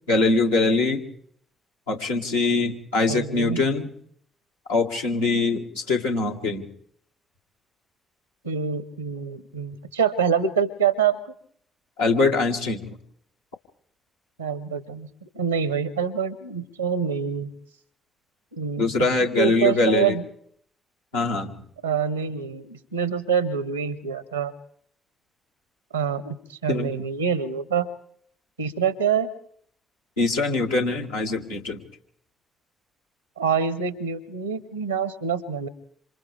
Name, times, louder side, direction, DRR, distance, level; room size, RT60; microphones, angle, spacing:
voice 1, 0.1-1.0 1.9-3.9 4.7-6.7 12.0-13.0 18.8-20.2 21.1-21.5 26.7-27.0 30.2-31.8, left 3 dB, 85° left, -3 dB, 2.0 m, -23 dB
voice 2, 3.1-3.6 8.4-11.2 14.4-17.5 18.5-18.9 19.2-20.2 21.8-24.5 25.9-27.9 28.6-29.3 33.4-35.7, right 7 dB, 85° right, 16 dB, 1.0 m, -26 dB
27.5 x 27.0 x 3.5 m, 0.65 s
figure-of-eight pair, 40°, 0 cm